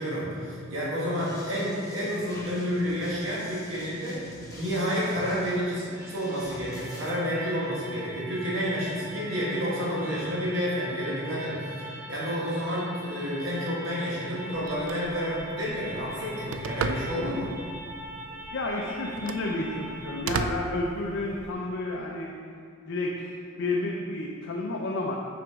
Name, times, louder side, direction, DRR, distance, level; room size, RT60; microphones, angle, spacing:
voice 1, 0.0-4.2 4.5-17.5, equal, 70° right, -7 dB, 1.5 m, -30 dB
sound 1, 1.2-7.1, left 1 dB, 15° left, 1.3 m, -45 dB
sound 2, 5.9-20.2, right 1 dB, 10° right, 0.4 m, -42 dB
Telephone, 14.5-21.5, right 5 dB, 90° right, 0.3 m, -37 dB
voice 2, 18.5-22.3 22.9-25.2, left 2 dB, 65° left, -1 dB, 0.5 m, -31 dB
6.0 x 5.1 x 3.6 m, 2.3 s
head